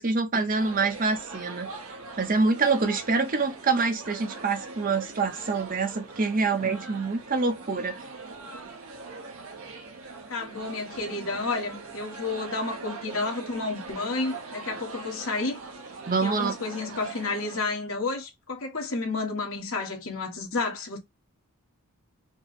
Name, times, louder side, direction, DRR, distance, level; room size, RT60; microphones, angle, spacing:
voice 1, 0.0-1.7 2.2-8.0 16.1-16.5, right 4 dB, 40° right, 0.8 m, -26 dB
sound 1, 0.6-17.6, right 3 dB, 70° right, 0.9 m, -42 dB
voice 2, 10.3-15.6 16.2-21.0, left 3 dB, 65° left, 1.4 m, -31 dB
4.6 x 2.2 x 4.1 m
head